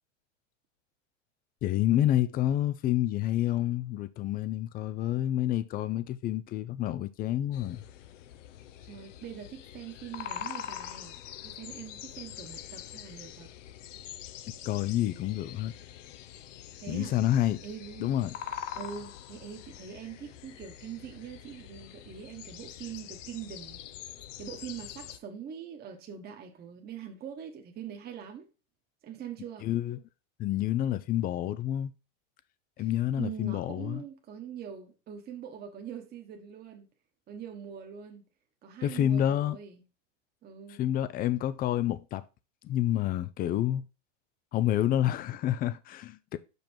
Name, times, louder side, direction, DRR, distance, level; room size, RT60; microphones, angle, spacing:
voice 1, 1.6-7.8 14.6-15.7 16.9-17.6 18.0-18.3 29.6-30.0 30.4-31.9 32.8-34.0 38.8-39.6 40.8-42.2 42.6-43.8 44.5-46.4, left 12 dB, 25° left, 0.5 m, -28 dB
sound 1, 7.5-25.2, left 10 dB, 75° left, 0.9 m, -44 dB
voice 2, 8.8-13.5 16.8-17.3 17.6-18.1 18.8-23.8 24.4-28.5 29.0-29.7 32.8-32.9 33.1-36.9 37.3-38.2 38.6-39.8 40.4-40.8, right 8 dB, 25° right, 1.2 m, -43 dB
5.8 x 5.5 x 4.4 m
supercardioid pair, 130°, 37 cm